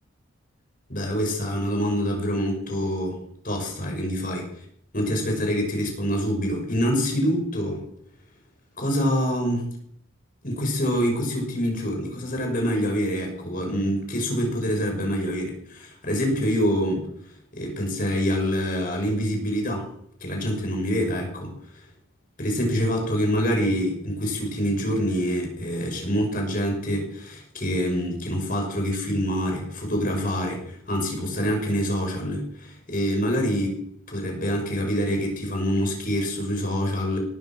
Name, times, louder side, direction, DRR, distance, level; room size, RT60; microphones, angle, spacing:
voice 1, 0.9-3.2 3.4-4.5 4.9-7.8 8.8-9.7 10.4-17.1 17.5-19.9 20.2-21.5 22.4-33.8 34.1-37.2, equal, 45° left, 2 dB, 6.0 m, -26 dB
18.5 x 9.8 x 7.5 m, 0.68 s
head